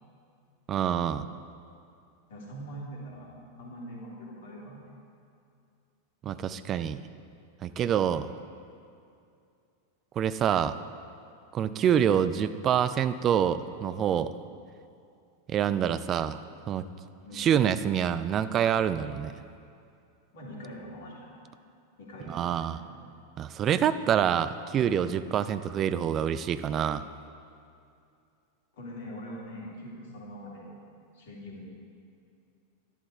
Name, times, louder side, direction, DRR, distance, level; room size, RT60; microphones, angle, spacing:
voice 1, 0.7-1.3 6.2-7.0 7.6-8.3 10.2-10.8 11.5-14.3 15.5-16.4 16.7-16.9 17.3-19.3 22.3-22.8 23.4-27.0, right 9 dB, 30° right, 13 dB, 0.4 m, -26 dB
voice 2, 2.3-4.9 17.2-17.5 20.3-21.3 22.0-23.0 28.7-30.8 31.1-31.7, equal, 55° left, -3 dB, 3.0 m, -43 dB
12.0 x 11.0 x 4.7 m, 2.5 s
figure-of-eight pair, 90°, 0 cm